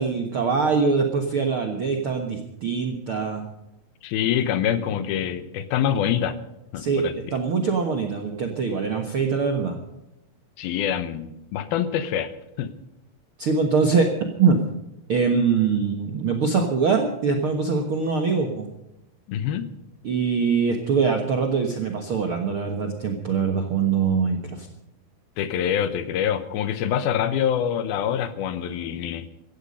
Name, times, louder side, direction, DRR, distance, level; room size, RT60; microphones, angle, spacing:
voice 1, 0.0-3.5 6.8-7.0 7.3-9.8 13.4-14.1 14.4-14.6 15.1-18.7 20.0-24.7, right 5 dB, 65° right, 4 dB, 1.3 m, -23 dB
voice 2, 4.0-6.4 6.7-7.4 10.6-12.3 12.6-12.7 19.3-19.7 25.4-29.3, left 9 dB, 75° left, 13 dB, 2.8 m, -25 dB
17.0 x 14.0 x 5.3 m, 0.89 s
omnidirectional pair, 4.5 m